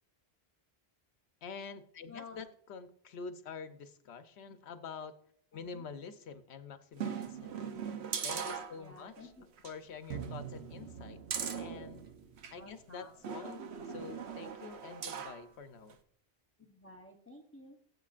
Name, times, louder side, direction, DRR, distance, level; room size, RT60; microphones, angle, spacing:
voice 1, 1.4-5.2 5.5-7.6 8.2-9.3 9.6-11.2 11.6-12.0 12.5-16.0, left 5 dB, 85° left, 10 dB, 1.0 m, -47 dB
voice 2, 2.1-2.5 5.5-5.9 8.7-9.5 12.5-13.2 16.6-17.8, left 3 dB, 15° left, 1 dB, 0.8 m, -52 dB
sound 1, 7.0-9.2 9.6-9.7 10.1-12.6 13.2-15.4 15.9-16.0, right 7 dB, 85° right, 1.1 m, -40 dB
17.0 x 8.0 x 2.5 m, 0.68 s
omnidirectional pair, 1.1 m